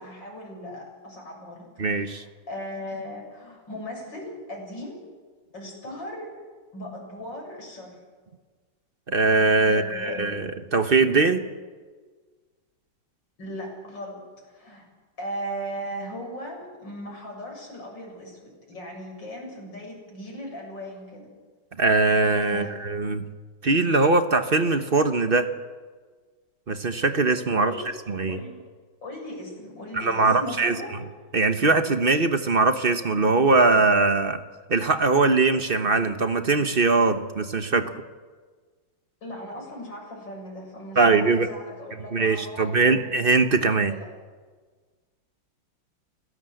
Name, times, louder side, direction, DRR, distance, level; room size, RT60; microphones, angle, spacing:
voice 1, 0.0-5.0 5.5-6.3 6.7-8.0 9.6-10.4 13.4-14.9 15.2-21.3 22.5-22.8 27.6-27.9 28.3-28.7 29.0-31.0 39.2-42.9 43.8-44.1, equal, 80° left, 0 dB, 7.8 m, -38 dB
voice 2, 1.8-2.2 9.1-11.4 21.8-23.2 23.6-25.5 26.7-27.7 28.1-28.4 29.9-30.7 31.3-34.4 34.7-37.9 41.0-41.5 42.1-43.9, right 3 dB, 35° right, 9 dB, 1.1 m, -21 dB
29.0 x 16.5 x 7.9 m, 1.5 s
omnidirectional pair, 2.0 m